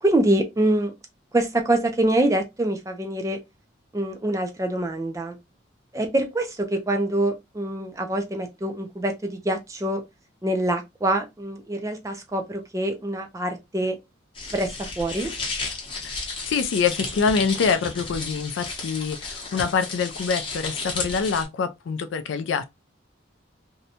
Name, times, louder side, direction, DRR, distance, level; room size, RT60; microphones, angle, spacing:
voice 1, 0.0-0.9 1.3-3.4 3.9-5.4 5.9-10.0 10.4-14.0 14.5-15.3, right 1 dB, 15° right, 0.3 m, -25 dB
sound 1, 14.3-21.4, left 3 dB, 25° left, 0.7 m, -33 dB
voice 2, 16.5-22.7, left 5 dB, 70° left, 0.3 m, -25 dB
2.6 x 2.1 x 2.7 m
head